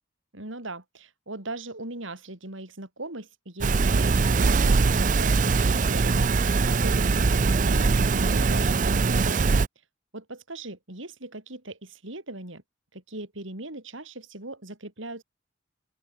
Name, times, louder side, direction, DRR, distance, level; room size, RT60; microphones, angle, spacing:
voice 1, 0.3-9.6 10.1-12.6 12.9-15.2, right 2 dB, 80° right, 5.0 m, -39 dB
sound 1, 3.6-9.7, right 4 dB, 40° right, 0.5 m, -22 dB
open air
head